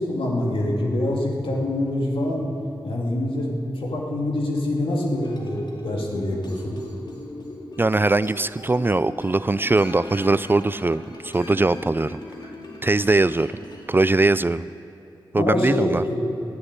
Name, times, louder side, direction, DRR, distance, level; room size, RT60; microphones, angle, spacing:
voice 1, 0.0-2.5 2.8-3.5 3.8-6.7 15.4-16.2, left 1 dB, 80° left, -1 dB, 2.4 m, -25 dB
sound 1, 5.2-14.1, left 2 dB, 55° left, 2.3 m, -40 dB
voice 2, 7.8-12.2 12.8-13.5 13.9-14.7 15.3-16.0, right 2 dB, 25° right, 16 dB, 0.3 m, -21 dB
13.0 x 10.0 x 9.7 m, 2.7 s
cardioid pair, 60°, 9 cm